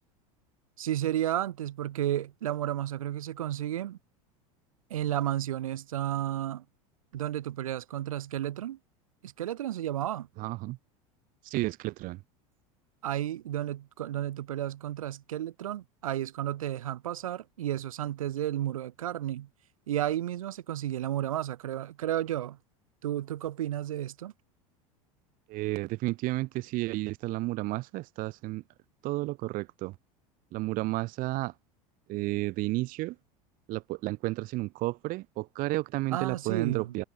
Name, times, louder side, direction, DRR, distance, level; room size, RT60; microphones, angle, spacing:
voice 1, 0.8-4.0 4.9-6.6 7.1-8.8 9.2-10.3 13.0-19.5 19.9-22.6 23.0-24.3 36.1-36.9, right 12 dB, 90° right, 3.4 m, -32 dB
voice 2, 10.4-10.8 11.4-12.2 25.5-28.6 29.0-29.9 30.5-31.5 32.1-33.2 33.7-37.0, right 20 dB, 55° right, 2.3 m, -32 dB
hypercardioid pair, 100°, 17 cm